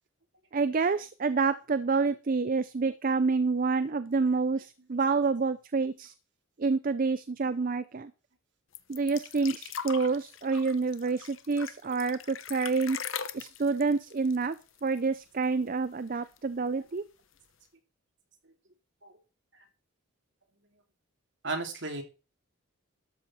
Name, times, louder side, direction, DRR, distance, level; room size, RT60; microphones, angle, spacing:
voice 1, 0.5-6.1 6.6-8.1 8.9-13.0 13.3-14.6 14.8-17.0, right 4 dB, 40° right, 14 dB, 0.5 m, -28 dB
sound 1, 8.7-15.2 15.4-15.5 15.8-16.6 17.4-17.5, left 8 dB, 65° left, 1.0 m, -41 dB
voice 2, 21.4-22.0, right 3 dB, 55° right, 4 dB, 2.7 m, -35 dB
12.5 x 8.1 x 4.3 m, 0.32 s
head